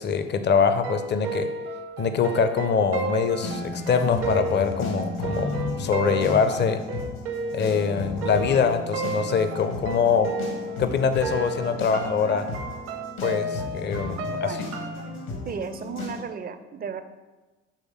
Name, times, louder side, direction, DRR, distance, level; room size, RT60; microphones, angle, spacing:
voice 1, 0.0-1.5 2.0-5.5 5.8-6.8 7.5-10.3 10.8-12.5 13.2-14.6, left 6 dB, 35° left, 9 dB, 0.6 m, -24 dB
sound 1, 0.8-10.9 11.2-15.0, right 2 dB, 70° right, 0.9 m, -32 dB
sound 2, 3.4-16.2, left 3 dB, 70° left, 1.5 m, -34 dB
voice 2, 14.4-14.7 15.5-17.0, right 6 dB, 30° right, 10 dB, 0.5 m, -34 dB
6.3 x 3.3 x 5.4 m, 1.2 s
figure-of-eight pair, 50°, 31 cm